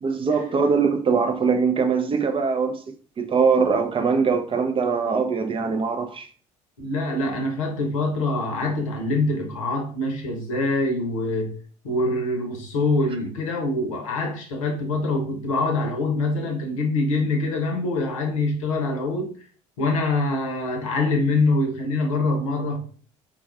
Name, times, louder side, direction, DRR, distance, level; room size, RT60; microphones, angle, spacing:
voice 1, 0.0-6.3, right 5 dB, 35° right, 0.4 m, -22 dB
voice 2, 6.8-11.5 11.8-19.3 19.8-22.8, left 2 dB, 90° left, 0.7 m, -24 dB
3.5 x 2.3 x 2.3 m
hypercardioid pair, 60°, 17 cm